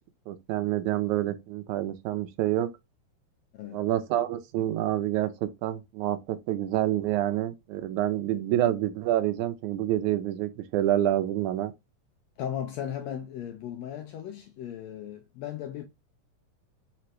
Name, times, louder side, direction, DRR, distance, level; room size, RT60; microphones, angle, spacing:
voice 1, 0.3-2.7 3.7-11.7, right 13 dB, 80° right, 1.9 m, -27 dB
voice 2, 3.5-3.9 12.4-15.9, left 10 dB, 85° left, 1.5 m, -36 dB
5.1 x 2.9 x 3.1 m
omnidirectional pair, 3.7 m